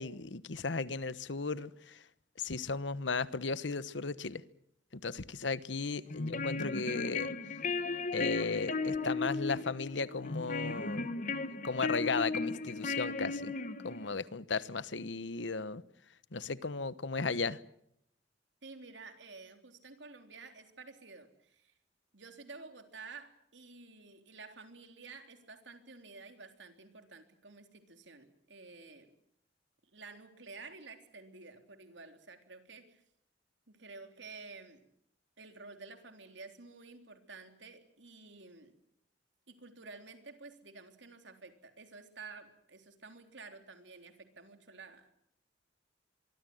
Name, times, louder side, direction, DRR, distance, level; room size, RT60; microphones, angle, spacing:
voice 1, 0.0-2.0 2.4-4.4 4.9-7.3 8.1-11.1 11.6-13.5 13.8-15.8 16.3-17.6, left 4 dB, 85° left, 1.1 m, -35 dB
sound 1, 6.1-14.1, left 3 dB, 45° left, 1.5 m, -36 dB
voice 2, 18.6-21.7 22.1-29.1 29.9-33.0 33.7-34.9 35.4-38.8 39.5-45.1, right 4 dB, 85° right, 3.6 m, -51 dB
24.0 x 24.0 x 7.9 m
head